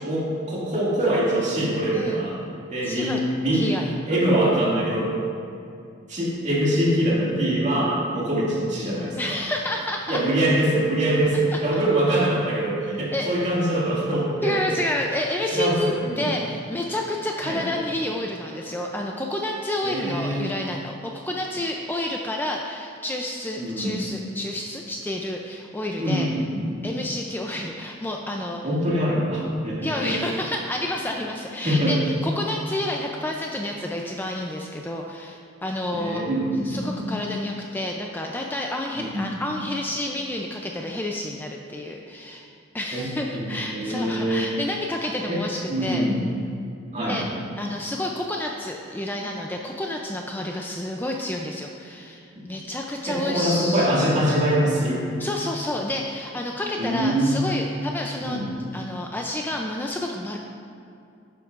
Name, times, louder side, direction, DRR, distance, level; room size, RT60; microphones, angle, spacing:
voice 1, 0.0-2.4 2.7-3.7 4.1-5.1 6.1-9.3 10.1-14.6 15.5-16.2 17.4-17.6 19.8-20.6 23.6-24.0 26.0-26.8 28.6-30.1 31.6-32.0 35.9-37.1 39.0-39.3 42.9-44.5 45.3-45.4 45.7-46.2 46.9-47.2 53.1-55.0 56.8-57.5 58.2-58.5, right 1 dB, 35° right, -5 dB, 2.2 m, -24 dB
voice 2, 2.8-3.2 3.5-4.0 9.2-10.2 11.5-11.6 13.1-13.4 14.4-26.3 26.8-28.6 29.8-36.2 36.6-42.5 42.7-46.0 47.0-47.2 47.6-52.2 52.5-53.9 55.2-58.4 58.7-60.4, left 1 dB, 10° left, 0 dB, 0.4 m, -29 dB
11.5 x 9.1 x 2.5 m, 2.5 s
head